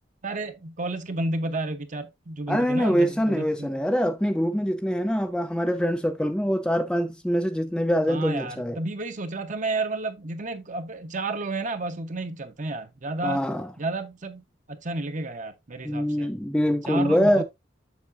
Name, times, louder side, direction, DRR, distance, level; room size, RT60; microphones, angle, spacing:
voice 1, 0.2-3.7 8.1-13.5 13.8-16.3 16.9-17.4, right 2 dB, 40° right, 0.9 m, -31 dB
voice 2, 2.5-8.8 13.2-13.7 15.8-17.4, equal, 5° left, 0.4 m, -24 dB
7.1 x 6.5 x 2.5 m
head